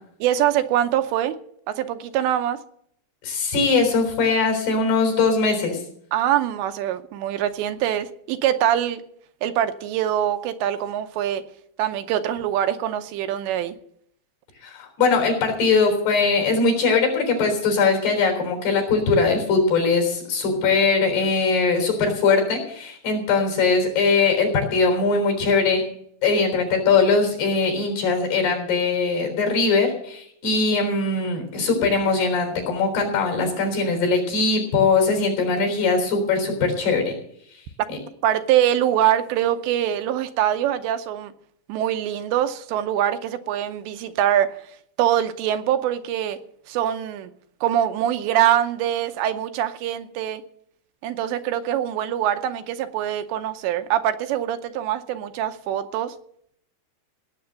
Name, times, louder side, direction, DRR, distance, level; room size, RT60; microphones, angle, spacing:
voice 1, 0.2-1.4 1.7-2.6 6.1-9.0 9.4-11.4 11.8-13.8 38.2-41.3 41.7-44.6 45.0-46.4 46.7-47.3 47.6-50.4 51.0-56.2, right 11 dB, 80° right, 2.9 m, -23 dB
voice 2, 3.2-5.8 14.6-25.8 26.2-37.1, left 4 dB, 65° left, 5.8 m, -21 dB
17.5 x 7.7 x 6.4 m
omnidirectional pair, 5.2 m